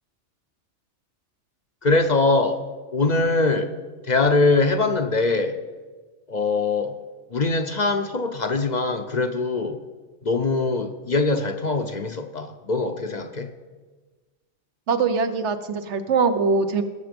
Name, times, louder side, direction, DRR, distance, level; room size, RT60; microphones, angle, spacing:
voice 1, 1.8-2.6 2.9-3.7 4.0-5.6 6.3-6.9 7.3-9.8 10.2-13.5, left 3 dB, 45° left, 6 dB, 0.7 m, -22 dB
voice 2, 14.9-16.8, right 4 dB, 75° right, 9 dB, 1.2 m, -22 dB
19.0 x 6.9 x 5.2 m, 1.4 s
omnidirectional pair, 1.2 m